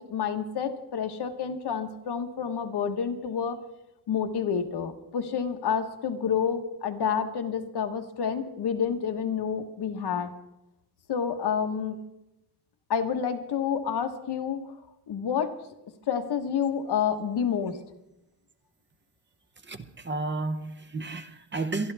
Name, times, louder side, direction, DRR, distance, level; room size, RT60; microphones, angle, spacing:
voice 1, 0.0-3.6 4.1-10.3 11.1-12.0 12.9-14.6 15.1-15.5 16.1-17.8, left 7 dB, 85° left, 1.3 m, -29 dB
voice 2, 19.7-21.9, right 3 dB, 30° right, 0.7 m, -32 dB
23.0 x 12.0 x 3.4 m
wide cardioid pair, 155°, 38 cm